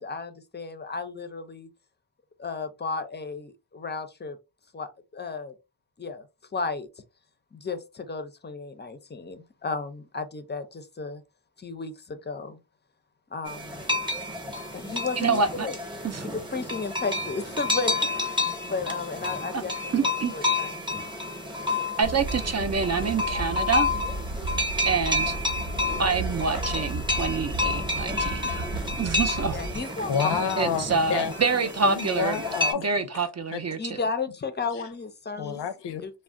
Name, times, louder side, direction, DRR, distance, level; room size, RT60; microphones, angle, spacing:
voice 1, 0.0-1.7 2.4-4.4 4.7-5.5 6.0-6.2 6.5-6.9 7.5-11.2 11.6-12.6 13.3-13.9 14.7-15.8 16.3-18.0 18.2-20.9 29.5-30.1 33.8-35.6 36.0-36.1, left 4 dB, 25° left, 0.5 m, -34 dB
sound 1, 13.5-32.7, left 2 dB, 10° right, 0.8 m, -30 dB
voice 2, 15.2-15.7 16.0-16.2 19.5-19.6 19.9-20.3 22.0-23.9 24.8-25.4 26.0-28.7 29.0-29.6 30.6-32.4 32.8-34.0, right 4 dB, 40° right, 0.5 m, -26 dB
sound 2, 22.0-29.8, right 2 dB, 65° right, 0.9 m, -34 dB
voice 3, 30.1-31.3 31.8-32.9 33.5-33.6 35.4-36.0, left 7 dB, 90° left, 0.5 m, -28 dB
2.3 x 2.1 x 3.6 m
wide cardioid pair, 75°, 40 cm